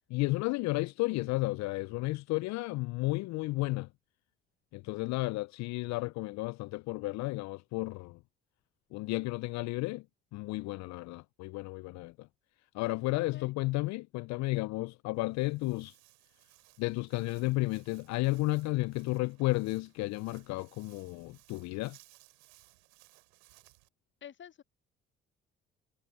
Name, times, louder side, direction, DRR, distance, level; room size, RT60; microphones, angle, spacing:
voice 1, 0.1-3.9 4.7-8.2 8.9-10.0 10.3-12.3 12.7-15.9 16.8-22.0, left 21 dB, 70° left, 0.5 m, -33 dB
voice 2, 13.1-13.5 24.2-24.6, left 9 dB, 40° left, 0.9 m, -49 dB
Walk footsteps, 15.1-23.9, right 33 dB, 85° right, 4.1 m, -63 dB
hypercardioid pair, 50°, 29 cm